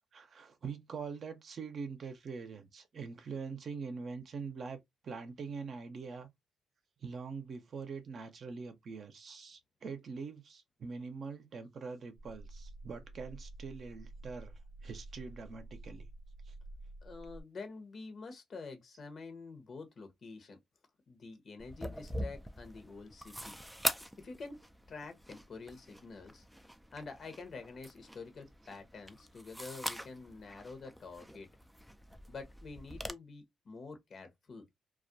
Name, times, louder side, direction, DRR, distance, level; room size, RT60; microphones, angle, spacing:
voice 1, 0.1-4.8 5.0-6.3 7.0-16.1 16.5-16.6, right 5 dB, 50° right, 0.6 m, -44 dB
sound 1, 12.2-17.4, right 2 dB, 80° left, 0.5 m, -50 dB
voice 2, 17.0-20.6 21.1-23.6 24.2-24.6 24.9-26.5 26.9-31.5 32.3-34.7, left 4 dB, 50° left, 0.8 m, -47 dB
sound 2, 21.6-33.1, equal, ahead, 0.3 m, -43 dB
2.3 x 2.2 x 2.6 m
cardioid pair, 90°, 0 cm